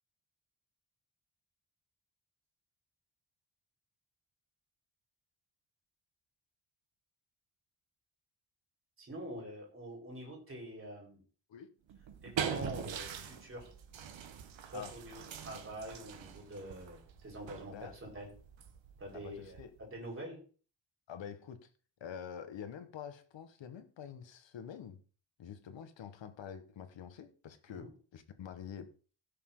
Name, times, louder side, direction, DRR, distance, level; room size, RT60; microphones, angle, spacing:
voice 1, 9.0-11.2 12.2-13.7 14.7-18.3 19.0-19.6 19.9-20.4 27.7-27.9, right 1 dB, 30° right, 4.6 m, -45 dB
sound 1, 11.9-20.0, right 7 dB, 85° right, 1.5 m, -43 dB
voice 2, 19.1-19.7 21.1-21.7 22.0-25.0 25.4-28.9, left 8 dB, 80° left, 1.6 m, -47 dB
16.5 x 6.9 x 3.9 m
wide cardioid pair, 180°, 44 cm